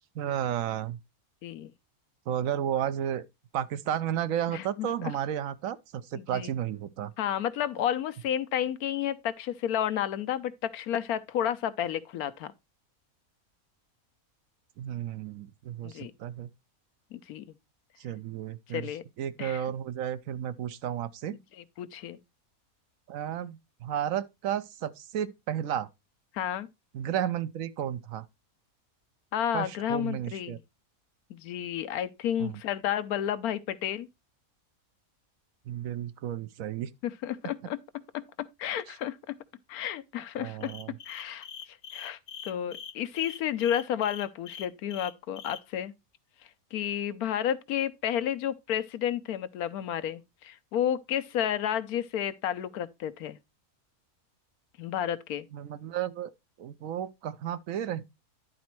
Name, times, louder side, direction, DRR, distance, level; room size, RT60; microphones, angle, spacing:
voice 1, 0.1-1.0 2.3-3.2 3.5-7.1 14.8-16.5 18.0-18.9 19.2-21.4 23.1-25.9 26.9-28.3 29.5-30.6 32.4-32.6 35.7-36.9 40.4-40.9 55.5-56.3 56.6-58.0, right 10 dB, 70° right, 1.0 m, -33 dB
voice 2, 4.5-5.1 6.2-6.5 7.2-12.5 15.8-16.1 17.1-17.4 18.7-19.0 19.4-19.6 21.6-22.2 26.3-26.7 29.3-30.5 31.3-34.1 37.0-37.8 38.1-39.4 39.7-40.7 41.1-45.9 46.7-53.4 54.8-55.5, left 10 dB, 85° left, 1.2 m, -31 dB
sound 1, 40.6-45.6, left 8 dB, 60° left, 1.0 m, -43 dB
10.5 x 4.1 x 4.4 m
omnidirectional pair, 1.5 m